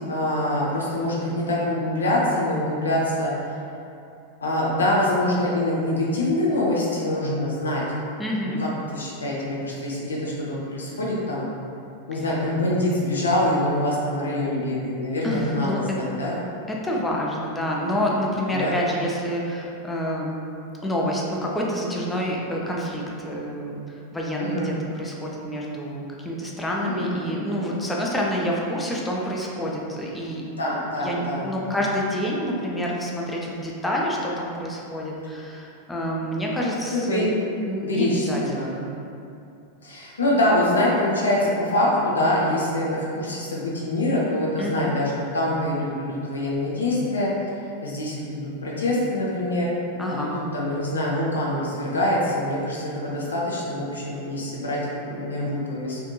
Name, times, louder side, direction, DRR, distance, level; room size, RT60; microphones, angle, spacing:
voice 1, 0.0-3.3 4.4-7.8 8.4-11.4 12.1-16.4 18.5-18.7 24.4-24.7 26.8-27.4 27.6-27.7 30.6-31.5 36.9-37.2 37.8-38.7 39.8-47.3 47.8-49.7 50.3-56.0, left 1 dB, 70° left, -4 dB, 0.5 m, -25 dB
voice 2, 8.2-8.6 15.2-15.8 16.7-20.3 20.8-30.4 30.7-37.3 37.7-38.9 44.6-44.9 50.0-50.4, equal, 10° left, -3 dB, 0.4 m, -28 dB
2.6 x 2.5 x 2.2 m, 2.6 s
figure-of-eight pair, 90°, 0 cm